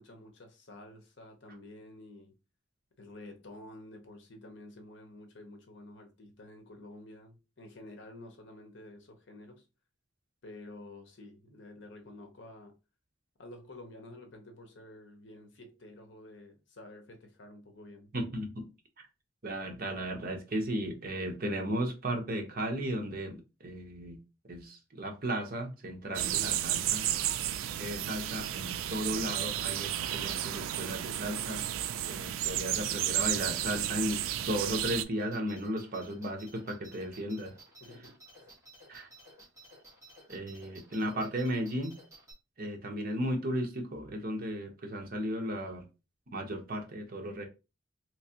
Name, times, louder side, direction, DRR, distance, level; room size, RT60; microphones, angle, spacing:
voice 1, 0.0-2.4 3.0-9.7 10.4-12.7 13.4-18.1 37.8-38.2, left 1 dB, 60° left, 0.9 m, -50 dB
voice 2, 18.1-18.7 19.4-24.2 24.5-27.0 27.8-31.7 32.1-37.5 38.9-39.1 40.3-41.9 42.6-45.8 46.3-47.5, equal, 45° right, 0.8 m, -35 dB
sound 1, 26.1-35.0, right 12 dB, 80° right, 0.3 m, -32 dB
sound 2, 35.2-42.3, right 1 dB, 15° right, 1.5 m, -55 dB
3.3 x 3.1 x 2.8 m
head